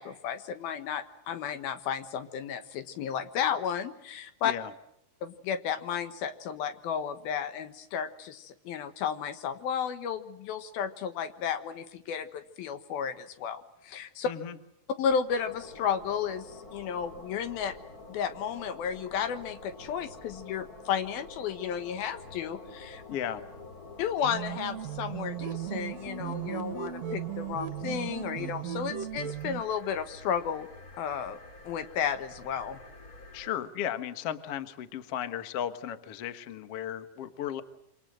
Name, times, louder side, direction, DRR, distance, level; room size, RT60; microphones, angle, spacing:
voice 1, 0.0-4.5 5.2-14.3 15.0-17.7 18.1-23.0 24.0-30.7 31.0-31.4 31.6-32.8, left 8 dB, 75° left, 9 dB, 3.2 m, -33 dB
voice 2, 14.2-14.6 23.1-23.4 33.3-37.6, left 10 dB, 55° left, 10 dB, 1.7 m, -35 dB
sound 1, 15.1-33.5, left 2 dB, 30° left, 2.2 m, -48 dB
sound 2, 24.2-29.6, right 11 dB, 60° right, 2.0 m, -36 dB
27.0 x 25.5 x 7.7 m, 0.79 s
omnidirectional pair, 4.4 m